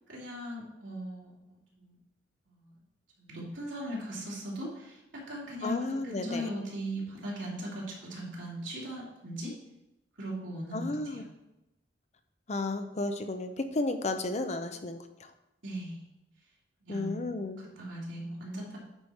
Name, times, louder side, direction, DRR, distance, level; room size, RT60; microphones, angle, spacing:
voice 1, 0.1-2.0 2.5-2.8 3.2-9.5 10.2-11.2 15.6-16.0 16.8-18.8, equal, 85° right, -5 dB, 2.8 m, -39 dB
voice 2, 5.6-6.5 10.7-11.2 12.5-15.0 16.9-17.6, left 2 dB, 35° left, 8 dB, 0.6 m, -33 dB
9.2 x 5.0 x 4.3 m, 0.92 s
head